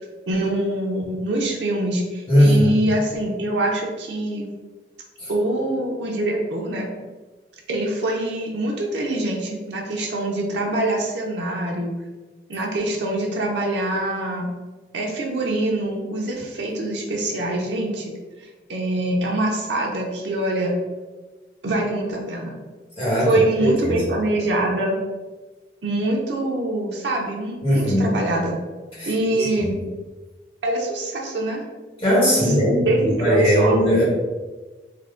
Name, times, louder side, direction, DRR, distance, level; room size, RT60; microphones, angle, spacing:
voice 1, 0.3-4.5 5.3-6.9 7.7-11.9 12.5-14.5 14.9-18.1 18.4-20.7 21.6-22.6 23.2-25.0 25.8-28.6 29.1-29.7 30.6-31.6 32.4-32.5 32.9-33.8, right 1 dB, 90° right, -1 dB, 0.6 m, -24 dB
voice 2, 2.3-2.7 5.2-5.3 23.0-24.0 27.6-28.1 29.0-29.7 32.0-34.0, equal, 30° left, -8 dB, 1.1 m, -19 dB
3.6 x 2.2 x 3.5 m, 1.3 s
head